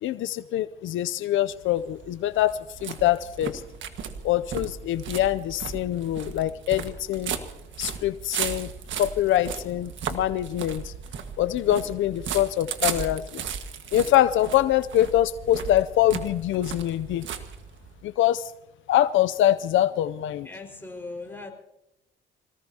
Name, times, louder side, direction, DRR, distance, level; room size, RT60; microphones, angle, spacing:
voice 1, 0.0-3.6 4.2-7.3 7.8-8.7 9.0-10.9 11.4-13.4 13.9-17.3 18.0-18.5 18.9-20.5, left 13 dB, 75° left, 14 dB, 0.5 m, -24 dB
sound 1, 1.5-18.0, right 7 dB, 70° right, 1.6 m, -36 dB
voice 2, 20.3-21.5, left 3 dB, 10° left, 2 dB, 4.9 m, -39 dB
26.0 x 18.5 x 2.8 m, 0.89 s
cardioid pair, 90°, 20 cm